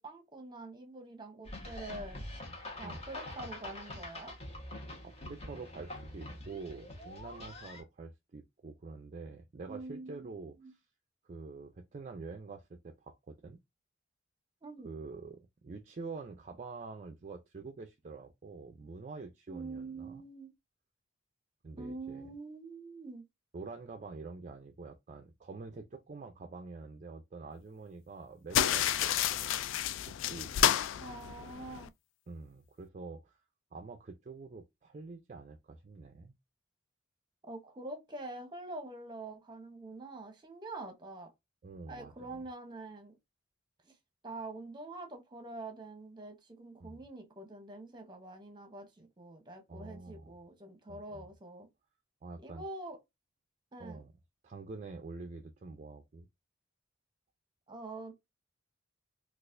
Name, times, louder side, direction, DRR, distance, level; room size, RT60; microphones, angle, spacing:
voice 1, 0.0-2.2 2.8-4.4 9.7-10.3 10.6-10.7 14.6-14.9 19.5-20.5 21.8-23.2 31.0-31.9 37.4-41.3 41.9-43.2 43.8-43.9 44.2-51.7 52.4-53.0 53.7-54.0 57.7-58.1, right 2 dB, 25° right, 0.9 m, -45 dB
sound 1, 1.4-7.8, left 1 dB, 30° left, 1.1 m, -45 dB
voice 2, 5.0-10.8 11.2-13.6 14.8-20.2 21.6-22.2 23.5-29.5 30.0-30.9 31.4-31.7 32.3-33.4 33.7-36.3 41.6-42.4 46.8-47.0 49.7-50.3 50.9-51.3 52.2-52.6 53.8-54.1 54.4-56.3, right 3 dB, 40° right, 0.4 m, -46 dB
sound 2, 28.5-31.9, left 10 dB, 75° left, 0.3 m, -30 dB
4.0 x 2.4 x 2.5 m
head